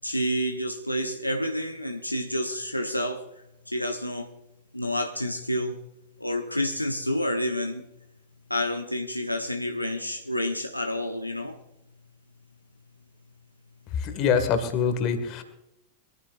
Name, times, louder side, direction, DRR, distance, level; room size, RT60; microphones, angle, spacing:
voice 1, 0.0-3.2 3.7-4.3 4.7-5.8 6.2-7.8 8.5-11.6, equal, 90° left, 4 dB, 0.9 m, -29 dB
voice 2, 14.0-15.4, left 6 dB, 40° left, 7 dB, 1.9 m, -24 dB
24.0 x 14.0 x 2.6 m, 0.86 s
figure-of-eight pair, 90°, 0 cm